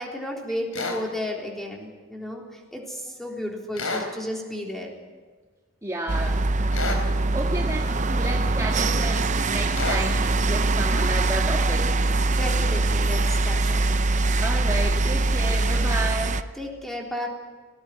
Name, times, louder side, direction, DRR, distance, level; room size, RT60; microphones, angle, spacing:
voice 1, 0.0-2.4 2.7-4.9 12.3-13.8 16.5-17.3, left 1 dB, ahead, -1 dB, 3.8 m, -33 dB
sound 1, 0.7-1.0 3.7-4.1 6.7-7.1 9.7-10.1, left 3 dB, 85° left, 4.1 m, -29 dB
voice 2, 5.8-6.4 7.3-12.0 14.4-16.4, right 1 dB, 15° right, -1 dB, 1.7 m, -31 dB
sound 2, 6.1-16.4, right 2 dB, 35° right, 0.7 m, -23 dB
19.0 x 18.5 x 9.6 m, 1.4 s
head